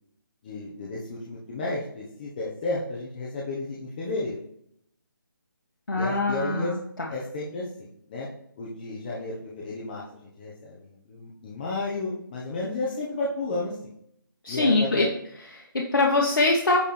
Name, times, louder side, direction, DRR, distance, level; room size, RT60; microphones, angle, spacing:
voice 1, 0.4-4.4 6.0-6.7 7.1-8.3 8.6-10.0 10.4-13.7 14.5-15.1, left 2 dB, 25° left, -6 dB, 1.1 m, -32 dB
voice 2, 5.9-7.1 14.4-15.1 15.4-16.8, left 2 dB, 75° left, -1 dB, 1.4 m, -23 dB
9.7 x 3.5 x 4.5 m, 0.73 s
figure-of-eight pair, 165°, 12 cm